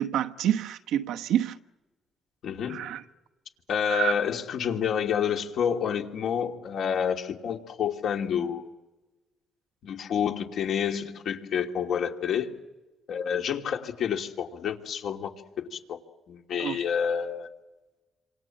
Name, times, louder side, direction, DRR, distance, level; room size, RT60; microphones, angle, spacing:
voice 1, 0.0-1.6 2.7-3.0 3.9-4.1 16.6-16.8, right 11 dB, 85° right, 1.1 m, -27 dB
voice 2, 2.4-2.9 3.7-8.7 9.8-12.5 13.1-15.3 15.6-16.0 16.3-17.5, left 8 dB, 70° left, 2.9 m, -29 dB
27.0 x 26.5 x 7.5 m
cardioid pair, 90°, 0 cm